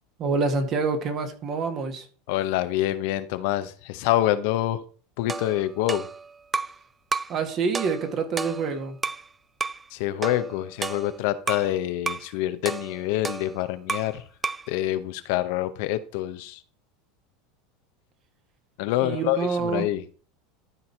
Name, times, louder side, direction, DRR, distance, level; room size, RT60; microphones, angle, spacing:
voice 1, 0.2-2.1 7.3-9.0 19.0-19.9, right 4 dB, 45° right, 6 dB, 1.8 m, -27 dB
voice 2, 2.3-4.8 5.2-6.1 9.9-14.3 14.7-16.6 18.8-20.0, left 14 dB, 65° left, 11 dB, 0.8 m, -26 dB
sound 1, 5.3-6.8 7.1-7.4 7.7-9.3 9.6-9.8 10.2-11.7 12.1-12.3 12.6-14.2 14.4-14.7, right 4 dB, 20° right, 0.3 m, -32 dB
12.0 x 4.1 x 4.5 m, 0.41 s
hypercardioid pair, 100°, 0 cm